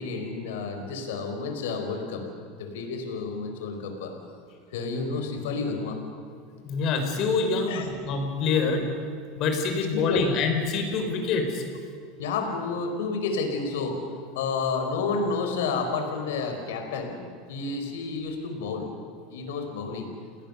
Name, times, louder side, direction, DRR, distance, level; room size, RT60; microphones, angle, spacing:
voice 1, 0.0-2.3 2.6-4.1 4.7-6.0 7.7-7.9 9.9-10.3 12.2-14.0 14.4-17.2 17.5-18.9 19.3-20.1, left 4 dB, 80° left, 5 dB, 4.3 m, -30 dB
voice 2, 6.6-8.8 9.4-11.6, left 4 dB, 50° left, 4 dB, 4.9 m, -26 dB
29.5 x 18.0 x 6.8 m, 2.2 s
hypercardioid pair, 100°, 0 cm